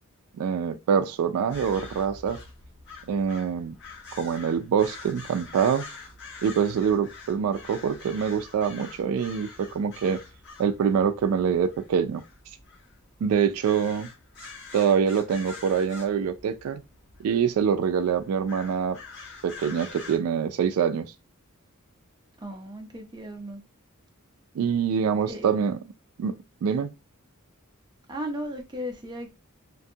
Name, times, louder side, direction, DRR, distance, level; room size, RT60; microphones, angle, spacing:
voice 1, 0.4-2.4 3.1-3.7 4.2-5.9 6.4-10.2 10.6-12.2 13.2-14.1 14.7-16.8 17.2-19.0 19.4-21.1 24.6-25.8 26.2-26.9, right 7 dB, 80° right, 0.3 m, -25 dB
sound 1, 1.5-20.2, left 4 dB, 55° left, 1.0 m, -45 dB
voice 2, 22.4-23.6 25.2-25.5 28.1-29.3, equal, 20° right, 0.6 m, -35 dB
2.6 x 2.3 x 2.6 m
head